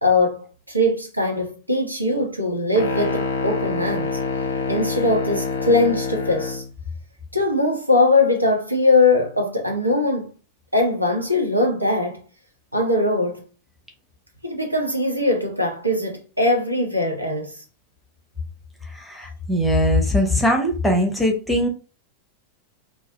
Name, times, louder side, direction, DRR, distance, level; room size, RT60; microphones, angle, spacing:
voice 1, 0.0-4.2 4.7-6.6 7.3-10.3 10.7-12.2 12.7-13.4 14.4-17.6, left 2 dB, 85° right, 0.6 m, -21 dB
sound 1, 2.7-6.7, left 4 dB, 70° left, 0.5 m, -26 dB
voice 2, 18.9-21.7, left 1 dB, 5° left, 0.6 m, -20 dB
2.3 x 2.0 x 2.7 m
figure-of-eight pair, 90°, 0 cm